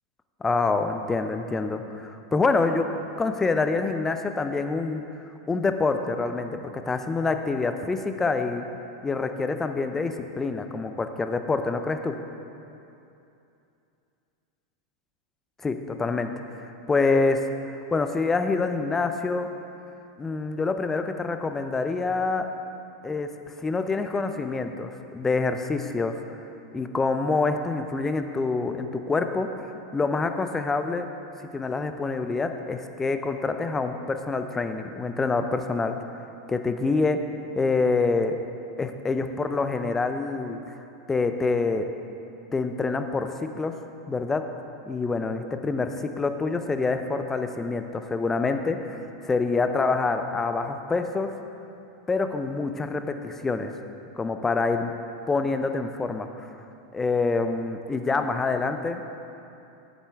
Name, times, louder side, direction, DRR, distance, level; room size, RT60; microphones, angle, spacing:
voice 1, 0.4-2.9 3.2-5.0 5.5-8.6 9.0-12.1 15.6-16.3 16.6-17.4 17.9-19.5 20.2-22.5 23.0-23.3 23.6-26.2 26.7-29.5 29.9-31.1 31.5-35.9 36.5-37.2 37.6-38.4 38.8-40.6 41.1-41.8 42.5-43.7 44.1-44.4 44.8-49.0 49.2-51.3 52.1-53.7 54.2-54.9 55.3-56.3 56.9-59.0, left 3 dB, 15° left, 7 dB, 0.5 m, -26 dB
8.1 x 7.5 x 3.5 m, 2.7 s
hypercardioid pair, 95°, 2 cm